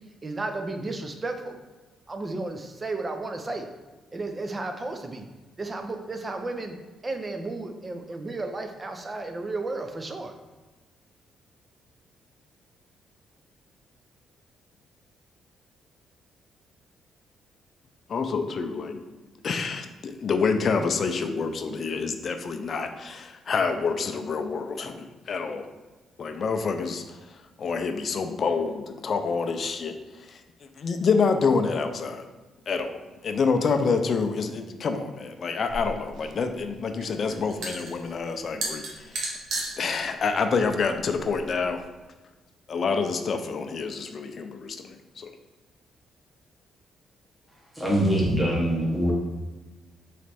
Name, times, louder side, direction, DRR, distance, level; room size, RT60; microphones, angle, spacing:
voice 1, 0.2-1.6 2.1-3.7 4.1-5.3 5.6-6.8 7.0-10.3, right 2 dB, 25° right, 5 dB, 0.5 m, -33 dB
voice 2, 18.1-19.0 19.4-25.7 26.2-30.4 30.8-32.2 32.7-39.2 39.8-41.8 42.7-45.3, left 5 dB, 50° left, 6 dB, 0.4 m, -27 dB
sound 1, 35.7-41.8, right 2 dB, 80° right, 1.0 m, -36 dB
voice 3, 47.7-49.1, equal, 5° right, -5 dB, 1.0 m, -23 dB
3.3 x 3.1 x 4.2 m, 1.2 s
cardioid pair, 90°, 0 cm